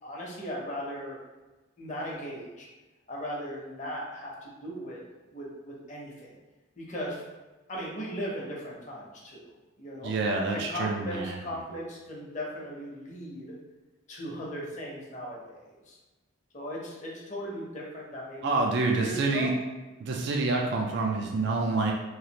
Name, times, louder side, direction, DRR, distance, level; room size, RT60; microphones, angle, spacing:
voice 1, 0.0-1.2 1.8-2.7 3.1-5.0 5.3-6.4 6.8-7.2 7.7-10.1 10.5-13.5 14.1-15.6 15.9-16.0 16.5-19.5, equal, 35° left, -4 dB, 0.7 m, -38 dB
voice 2, 10.0-11.4 18.4-19.5 20.0-21.9, right 3 dB, 55° right, 1 dB, 0.3 m, -27 dB
3.1 x 2.4 x 2.8 m, 1.2 s
head